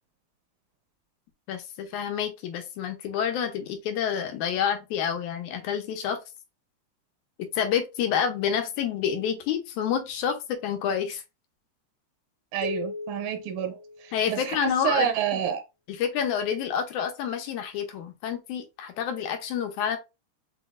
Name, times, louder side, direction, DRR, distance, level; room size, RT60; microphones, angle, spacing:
voice 1, 1.5-6.2 7.5-11.2 14.1-15.1 16.0-20.0, left 8 dB, 85° left, 2.3 m, -28 dB
voice 2, 12.5-15.6, right 10 dB, 85° right, 2.2 m, -29 dB
sound 1, 12.6-14.6, left 3 dB, 65° left, 1.4 m, -37 dB
6.1 x 3.0 x 2.5 m
omnidirectional pair, 3.4 m